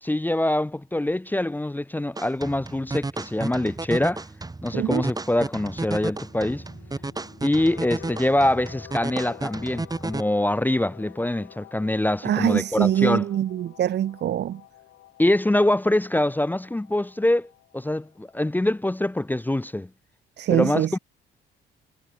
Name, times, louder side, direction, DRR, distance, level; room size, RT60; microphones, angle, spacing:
voice 1, 0.0-4.2 4.6-6.6 7.4-13.2 15.2-19.9 20.5-21.0, left 1 dB, 10° left, 0.8 m, -24 dB
sound 1, 2.2-10.2, right 3 dB, 20° right, 3.2 m, -33 dB
voice 2, 4.7-5.1 12.2-14.6 20.4-21.0, right 11 dB, 60° right, 0.9 m, -23 dB
sound 2, 5.4-18.9, left 15 dB, 85° left, 4.9 m, -49 dB
cardioid pair, 90°, 20 cm